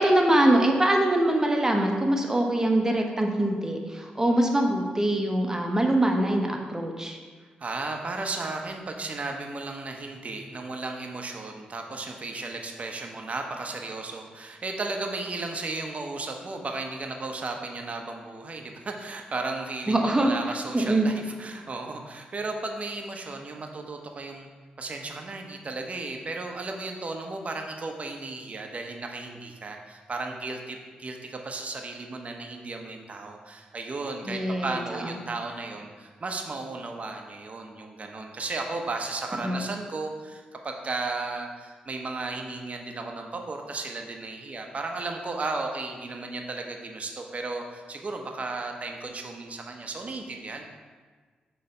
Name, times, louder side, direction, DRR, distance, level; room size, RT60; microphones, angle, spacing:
voice 1, 0.0-7.2 19.9-20.3 20.7-21.1 34.3-35.1 39.4-39.6, right 1 dB, 15° right, 2 dB, 1.1 m, -23 dB
voice 2, 7.6-24.5 24.8-50.6, right 3 dB, 45° right, 3 dB, 0.9 m, -35 dB
6.4 x 3.4 x 5.3 m, 1.5 s
supercardioid pair, 50°, 3 cm